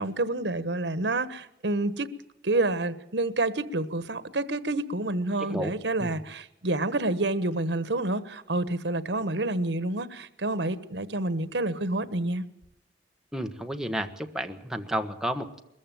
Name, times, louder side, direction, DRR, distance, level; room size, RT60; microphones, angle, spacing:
voice 1, 0.0-2.1 2.4-12.4, right 2 dB, 85° right, 1.3 m, -28 dB
voice 2, 5.4-5.7 6.0-6.1 13.3-15.6, equal, 5° right, 1.4 m, -32 dB
22.0 x 14.5 x 9.2 m
head